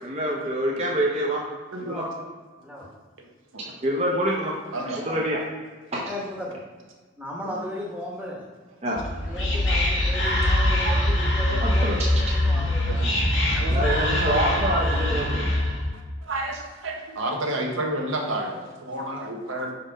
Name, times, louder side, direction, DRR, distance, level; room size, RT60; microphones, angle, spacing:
voice 1, 0.0-2.0 3.8-5.4 5.9-6.1 8.8-9.0 10.9-11.1 11.6-12.0 13.7-15.6, equal, 30° right, -2 dB, 0.6 m, -27 dB
voice 2, 2.6-3.0 5.1-5.2 6.0-6.6 7.2-8.4 9.3-13.7, left 1 dB, 5° right, -3 dB, 0.9 m, -36 dB
voice 3, 4.7-5.2 10.4-10.5 10.8-11.1 11.5-11.9 12.5-13.0 13.5-15.2 16.3-19.7, right 1 dB, 80° right, 1 dB, 1.1 m, -31 dB
Whispering, 9.0-15.9, left 1 dB, 75° left, 1.7 m, -23 dB
5.0 x 4.3 x 5.0 m, 1.4 s
head